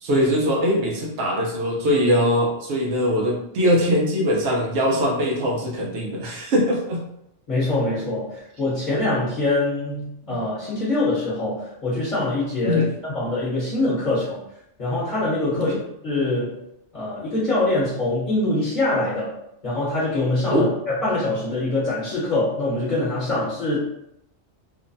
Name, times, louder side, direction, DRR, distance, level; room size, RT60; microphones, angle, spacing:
voice 1, 0.0-7.0 10.3-10.4 12.6-12.9 15.5-15.8 20.5-20.7, equal, 70° right, -1 dB, 0.9 m, -22 dB
voice 2, 7.5-14.4 14.8-15.7 16.0-16.6 16.9-19.3 19.6-23.8, left 2 dB, 45° left, -8 dB, 1.1 m, -24 dB
2.9 x 2.1 x 2.6 m, 0.78 s
omnidirectional pair, 1.2 m